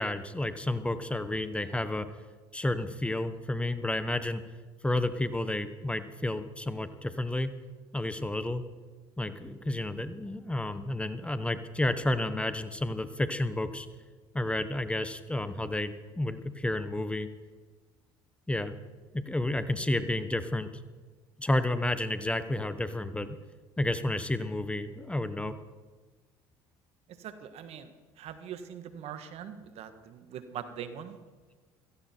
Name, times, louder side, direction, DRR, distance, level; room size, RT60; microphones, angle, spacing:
voice 1, 0.0-2.1 2.5-4.4 4.8-7.5 7.9-8.6 9.2-13.9 14.3-17.3 18.5-18.7 19.1-20.7 21.4-23.4 23.8-25.5, left 1 dB, 10° left, 11 dB, 1.1 m, -31 dB
voice 2, 27.1-31.2, right 8 dB, 60° right, 10 dB, 1.6 m, -42 dB
16.5 x 15.0 x 4.5 m, 1.3 s
supercardioid pair, 75°, 12 cm